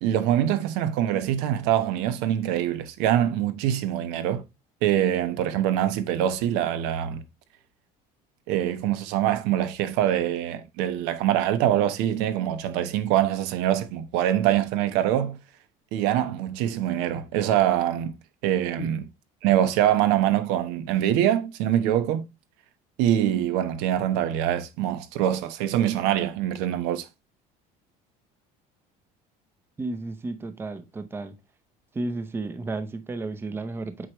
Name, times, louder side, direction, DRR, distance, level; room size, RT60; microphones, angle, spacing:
voice 1, 0.0-4.4 4.8-7.2 8.5-15.4 15.9-18.1 18.4-19.0 19.4-22.2 23.0-27.0, right 11 dB, 80° right, 1.1 m, -24 dB
voice 2, 29.8-31.4 31.9-34.1, right 2 dB, 15° right, 0.7 m, -32 dB
8.2 x 4.7 x 3.0 m
cardioid pair, 150°, 17 cm